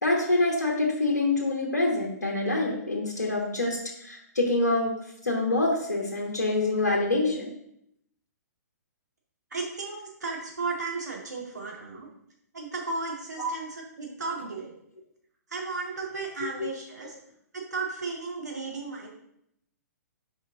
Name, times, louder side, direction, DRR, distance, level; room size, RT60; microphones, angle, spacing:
voice 1, 0.0-4.9 5.2-7.5 13.4-13.5 16.6-16.7, left 2 dB, 75° left, -2 dB, 1.2 m, -26 dB
voice 2, 9.5-12.1 12.5-13.7 14.0-14.7 15.5-17.1 17.5-19.1, right 4 dB, 75° right, -2 dB, 2.0 m, -34 dB
5.7 x 5.0 x 3.9 m, 0.74 s
figure-of-eight pair, 120°, 9 cm